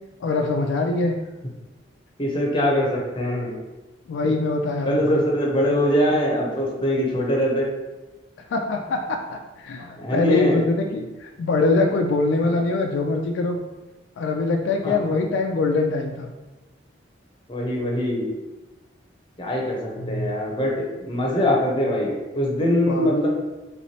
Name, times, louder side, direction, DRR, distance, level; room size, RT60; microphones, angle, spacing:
voice 1, 0.2-1.2 4.1-5.2 8.5-13.6 14.2-16.3 20.0-20.3 22.9-23.1, left 3 dB, 75° left, 3 dB, 0.3 m, -23 dB
voice 2, 2.2-3.5 4.2-4.3 4.8-7.7 10.0-10.6 14.8-14.9 17.5-18.3 19.4-23.3, equal, 25° left, -2 dB, 0.7 m, -22 dB
3.3 x 3.1 x 2.8 m, 1.1 s
head